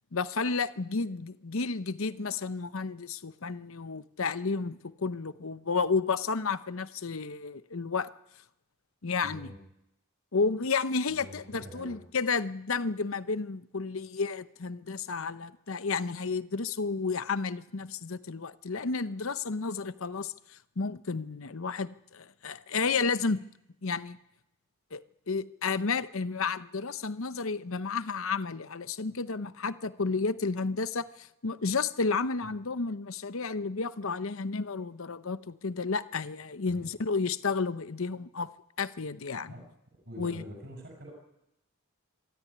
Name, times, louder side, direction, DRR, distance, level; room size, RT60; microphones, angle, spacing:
voice 1, 0.1-8.1 9.0-9.5 10.3-23.4 23.8-24.2 24.9-38.5 38.8-39.5 40.2-40.4, left 4 dB, 65° left, 13 dB, 0.8 m, -32 dB
voice 2, 9.2-9.6 11.1-12.0 36.7-36.9 39.5-39.7 40.0-41.1, equal, 50° right, 0 dB, 6.5 m, -45 dB
26.0 x 13.5 x 9.7 m, 0.85 s
head